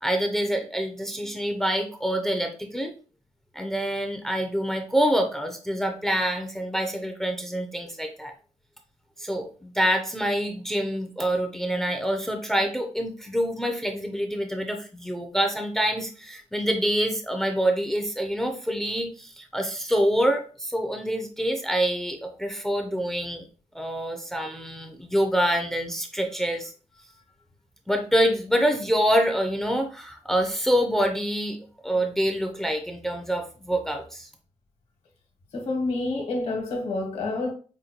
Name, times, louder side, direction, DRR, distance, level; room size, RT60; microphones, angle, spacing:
voice 1, 0.0-2.9 3.5-8.3 9.2-23.4 23.7-26.7 27.9-31.6 31.8-34.3, equal, 5° left, 0.4 m, -26 dB
voice 2, 35.5-37.5, left 2 dB, 65° left, 1.1 m, -28 dB
5.1 x 2.2 x 2.8 m
wide cardioid pair, 145°, 12 cm